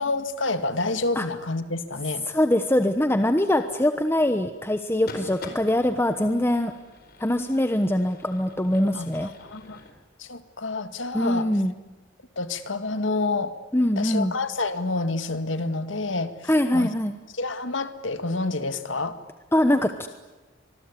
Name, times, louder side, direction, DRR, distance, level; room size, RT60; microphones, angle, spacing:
voice 1, 0.0-2.3 7.3-7.5 8.9-9.8 10.2-11.5 12.4-13.6 14.0-16.9 17.3-19.2, left 3 dB, 85° left, 10 dB, 2.0 m, -28 dB
voice 2, 2.3-6.7 7.2-9.3 11.1-11.7 13.7-14.3 16.5-17.1 19.5-20.1, left 1 dB, 15° left, 8 dB, 1.1 m, -23 dB
sound 1, 4.9-9.9, left 2 dB, 55° left, 4.4 m, -45 dB
25.5 x 21.0 x 9.8 m, 1.2 s
head